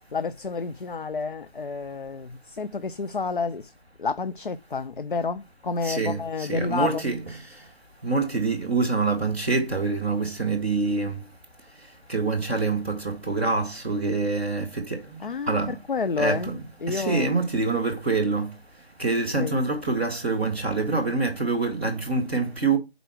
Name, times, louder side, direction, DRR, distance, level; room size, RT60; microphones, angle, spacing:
voice 1, 0.1-3.7 4.0-7.0 15.2-16.5 16.8-17.3 19.4-19.6, left 4 dB, 55° left, 0.5 m, -30 dB
voice 2, 5.8-7.2 8.0-11.1 12.1-15.2 15.5-15.8 16.2-16.6 16.9-18.5 19.0-22.8, right 3 dB, 10° left, 0.7 m, -25 dB
5.5 x 4.0 x 6.0 m
figure-of-eight pair, 160°, 31 cm